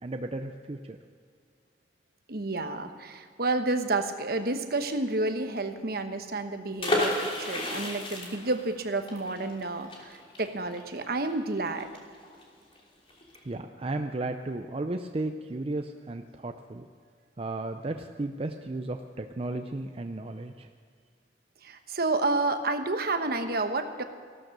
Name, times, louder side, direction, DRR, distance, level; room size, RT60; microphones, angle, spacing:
voice 1, 0.0-1.0 13.4-16.9 17.4-20.7, right 2 dB, 35° right, 6 dB, 0.5 m, -34 dB
voice 2, 2.3-11.9 21.6-24.0, right 2 dB, 60° right, 7 dB, 1.1 m, -30 dB
sound 1, 6.8-12.4 12.7-12.8 13.1-13.4, left 1 dB, 30° left, 2.9 m, -32 dB
16.0 x 12.5 x 6.7 m, 2.2 s
head